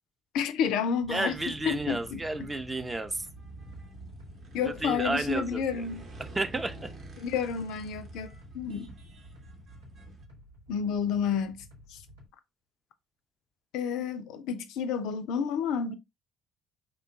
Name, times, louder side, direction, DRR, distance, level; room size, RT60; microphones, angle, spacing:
voice 1, 0.3-1.4 1.7-2.2 4.5-6.1 7.2-8.3 8.5-8.9 10.7-11.6 11.9-12.0 13.7-15.9, left 7 dB, 65° left, 0.3 m, -30 dB
sound 1, 1.0-12.3, left 1 dB, 85° right, 0.8 m, -53 dB
voice 2, 1.1-3.3 4.6-5.9 6.2-6.9, right 2 dB, 20° right, 0.5 m, -32 dB
sound 2, 1.3-10.2, right 1 dB, 50° right, 0.9 m, -47 dB
3.0 x 2.2 x 2.7 m
figure-of-eight pair, 50°, 0 cm